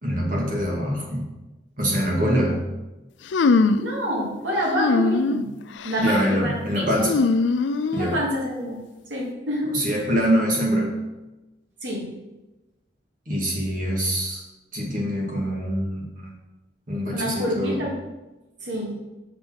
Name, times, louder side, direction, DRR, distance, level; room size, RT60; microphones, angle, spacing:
voice 1, 0.0-1.3 1.8-2.6 6.0-7.2 7.9-8.2 9.7-10.9 13.3-14.4 14.7-16.3 16.9-17.8, equal, 45° right, -2 dB, 2.1 m, -24 dB
sound 1, 3.3-3.9 4.7-5.4 5.8-6.2 7.0-8.2, left 3 dB, 80° left, 0.4 m, -21 dB
voice 2, 3.8-5.5 5.8-7.1 7.9-8.8 9.1-10.1 11.8-12.0 17.1-18.0 18.6-18.9, equal, 85° right, -4 dB, 2.8 m, -27 dB
6.7 x 5.2 x 6.2 m, 1.0 s
head